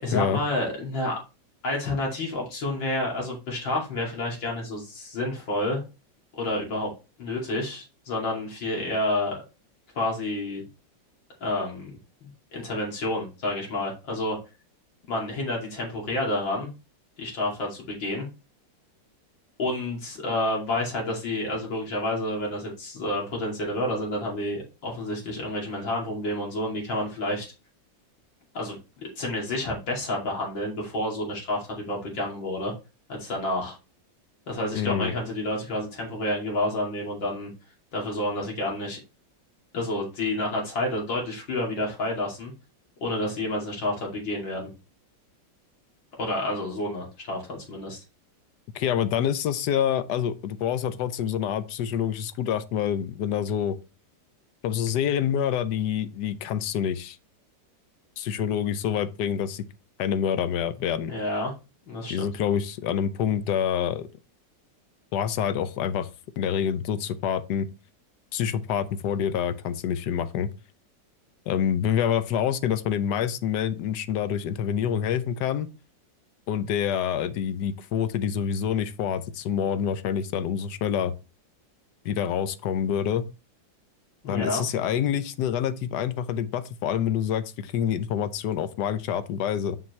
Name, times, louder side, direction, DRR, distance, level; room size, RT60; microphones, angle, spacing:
voice 1, 0.0-1.1 1.6-5.8 6.4-6.9 7.2-9.4 10.0-10.6 11.4-12.0 12.5-14.4 15.1-16.7 17.2-18.3 19.6-27.5 28.5-28.8 29.2-32.7 33.1-33.8 34.5-37.5 37.9-39.0 39.7-42.5 43.0-44.7 46.2-48.0 61.1-61.5 61.8-62.3 84.2-84.6, left 1 dB, 90° left, 3.4 m, -29 dB
voice 2, 34.7-35.1 48.7-53.8 54.6-57.2 58.2-59.6 60.0-61.1 62.1-64.1 65.1-66.1 66.4-67.7 68.3-70.5 71.5-75.7 76.5-81.1 82.0-83.2 84.3-89.8, left 9 dB, 70° left, 1.2 m, -27 dB
7.1 x 6.0 x 3.1 m
omnidirectional pair, 2.0 m